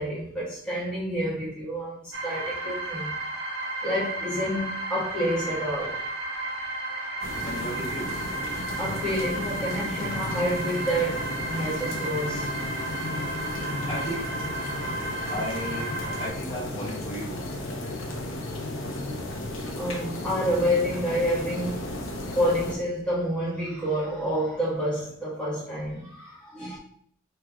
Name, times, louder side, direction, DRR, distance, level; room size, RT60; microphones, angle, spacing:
voice 1, 0.0-3.2 3.8-6.0 8.8-12.5 19.8-21.9 22.3-26.8, equal, 5° left, 1.3 m, -28 dB
sound 1, 2.1-16.3, right 2 dB, 55° right, 0.9 m, -33 dB
sound 2, 7.2-22.8, left 1 dB, 75° left, 0.8 m, -34 dB
voice 2, 7.4-8.1 13.9-14.3 15.3-15.9 16.2-17.3, equal, 30° left, 1.5 m, -34 dB
5.2 x 3.2 x 2.3 m
head